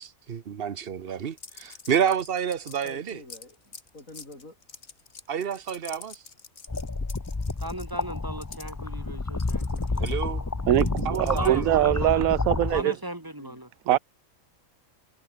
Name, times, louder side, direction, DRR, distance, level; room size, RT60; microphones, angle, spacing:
voice 1, 0.0-3.2 5.3-6.2 10.0-10.4 11.0-11.6 13.9-14.0, right 8 dB, 45° right, 1.2 m, -29 dB
sound 1, 1.4-8.7 9.4-11.8, left 5 dB, 55° left, 2.1 m, -46 dB
voice 2, 2.8-4.6 6.7-6.9 11.9-12.5 13.4-13.6, left 2 dB, 75° left, 7.6 m, -47 dB
sound 2, 6.7-12.8, left 3 dB, 20° left, 0.5 m, -30 dB
voice 3, 7.6-10.5 11.3-12.2 12.7-13.7, right 1 dB, 15° right, 2.3 m, -37 dB
voice 4, 10.7-12.9 13.9-14.0, right 14 dB, 85° right, 1.1 m, -22 dB
omnidirectional pair, 1.4 m